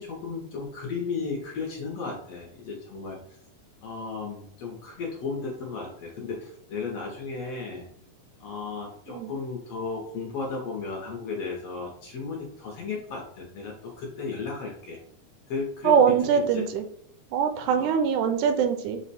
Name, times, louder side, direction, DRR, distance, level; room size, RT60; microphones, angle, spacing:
voice 1, 0.0-3.4 3.8-7.9 8.4-15.0 15.5-16.2 16.5-16.6 17.6-18.0, left 4 dB, 70° left, -1 dB, 1.6 m, -35 dB
voice 2, 15.8-16.8 17.3-19.0, right 7 dB, 85° right, 7 dB, 2.0 m, -22 dB
5.2 x 2.1 x 4.1 m, 0.67 s
omnidirectional pair, 3.4 m